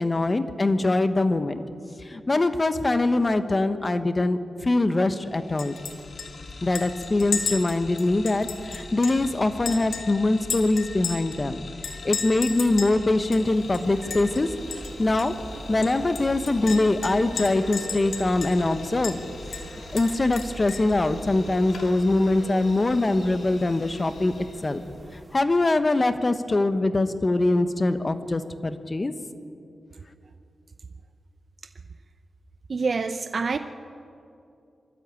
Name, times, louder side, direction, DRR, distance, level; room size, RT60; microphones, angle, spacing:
voice 1, 0.0-1.6 2.0-5.7 6.6-11.6 12.0-15.4 15.7-19.2 19.9-24.8 25.3-29.1, left 2 dB, 35° left, 10 dB, 1.2 m, -23 dB
sound 1, 5.2-24.9, left 3 dB, 65° left, 2.5 m, -43 dB
Chink clink, 5.6-5.9 6.2-6.3 6.8-9.3 9.7-11.4 11.8-13.0 13.3-13.4 13.7-14.4 14.7-14.9 15.2-15.3 15.8-18.7 19.0-19.2 19.5-20.9, left 6 dB, 90° left, 1.6 m, -34 dB
sound 2, 13.4-25.4, right 2 dB, 35° right, 1.7 m, -43 dB
voice 2, 32.7-33.6, right 4 dB, 55° right, 9 dB, 0.7 m, -26 dB
24.0 x 12.5 x 8.5 m, 2.6 s
cardioid pair, 70°, 0 cm